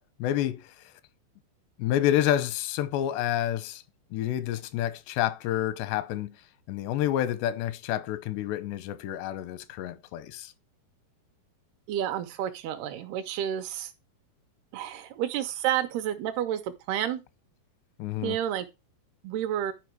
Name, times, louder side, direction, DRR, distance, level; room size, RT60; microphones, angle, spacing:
voice 1, 0.2-0.7 1.8-3.8 4.1-6.3 6.7-10.5 18.0-18.4, left 12 dB, 90° left, 2.9 m, -29 dB
voice 2, 11.9-13.9 14.7-17.2 18.2-18.7 19.2-19.7, right 11 dB, 75° right, 2.8 m, -30 dB
11.0 x 5.0 x 4.5 m
omnidirectional pair, 4.8 m